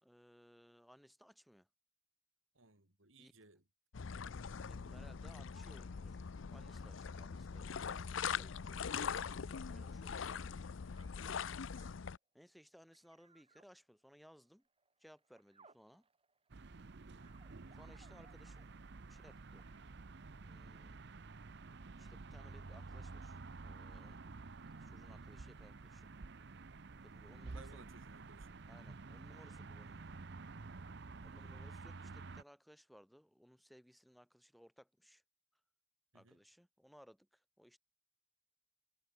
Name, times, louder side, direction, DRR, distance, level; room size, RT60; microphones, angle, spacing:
voice 1, 0.0-1.7 3.2-3.3 4.6-6.2 6.5-7.9 9.6-10.4 12.3-14.7 15.0-16.1 17.7-18.7 19.1-19.7 20.4-21.0 22.0-24.5 24.7-26.1 27.0-27.9 28.7-30.2 31.2-35.2 36.1-37.8, equal, ahead, 2.2 m, -63 dB
voice 2, 2.5-3.6 11.4-11.6 17.1-17.4 27.5-28.7 31.3-31.5 36.1-36.4, right 3 dB, 85° right, 4.8 m, -62 dB
sound 1, 3.9-12.2, left 6 dB, 75° left, 0.6 m, -42 dB
sound 2, 11.0-11.3 11.7-11.9 12.9-13.7 14.4-18.7 19.6-20.1 20.8-20.9, right 4 dB, 30° right, 3.7 m, -68 dB
sound 3, 16.5-32.4, right 3 dB, 60° right, 0.8 m, -51 dB
head